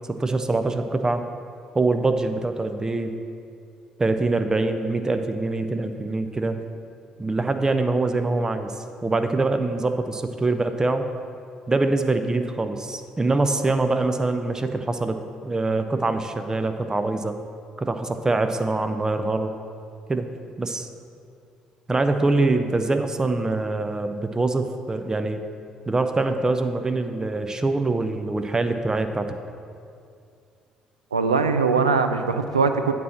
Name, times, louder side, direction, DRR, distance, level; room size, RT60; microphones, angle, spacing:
voice 1, 0.0-1.2 1.7-3.1 4.0-6.6 7.2-11.1 11.7-15.2 15.4-17.3 17.8-19.5 20.1-20.3 20.6-20.9 21.9-25.4 25.9-29.4, right 2 dB, 20° right, 7 dB, 0.6 m, -24 dB
voice 2, 31.1-32.9, right 4 dB, 85° right, 7 dB, 0.4 m, -21 dB
8.2 x 4.4 x 7.2 m, 2.4 s
figure-of-eight pair, 45°, 3 cm